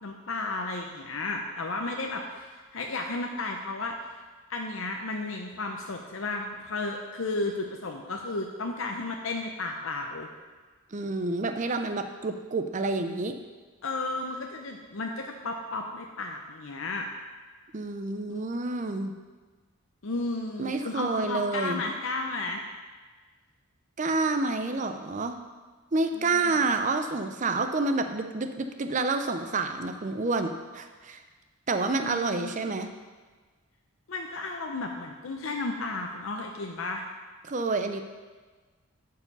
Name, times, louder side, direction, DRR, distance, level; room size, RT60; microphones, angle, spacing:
voice 1, 0.0-4.0 4.5-10.3 13.8-17.1 18.3-18.4 20.0-22.6 26.2-26.6 31.9-32.6 34.1-37.0, left 3 dB, 60° left, 2 dB, 0.6 m, -33 dB
voice 2, 10.9-13.4 17.7-19.1 20.6-21.8 24.0-25.3 25.9-31.2 31.7-32.9 37.4-38.0, right 3 dB, 35° right, 7 dB, 0.5 m, -28 dB
11.5 x 4.8 x 5.4 m, 1.4 s
head